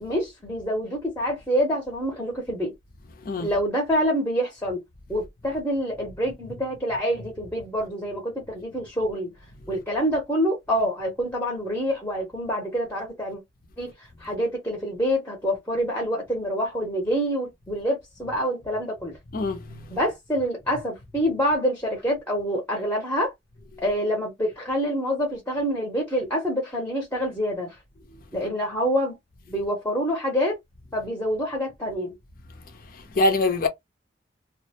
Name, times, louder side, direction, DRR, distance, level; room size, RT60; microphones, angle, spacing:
voice 1, 0.0-2.7 3.4-4.8 5.1-9.3 9.7-13.4 13.8-13.9 14.2-19.1 19.9-23.3 23.8-27.7 28.3-29.2 29.5-30.6 30.9-32.1, equal, 10° left, 0.7 m, -26 dB
voice 2, 19.3-20.0 33.1-33.7, left 2 dB, 50° left, 0.6 m, -24 dB
2.4 x 2.0 x 2.8 m
head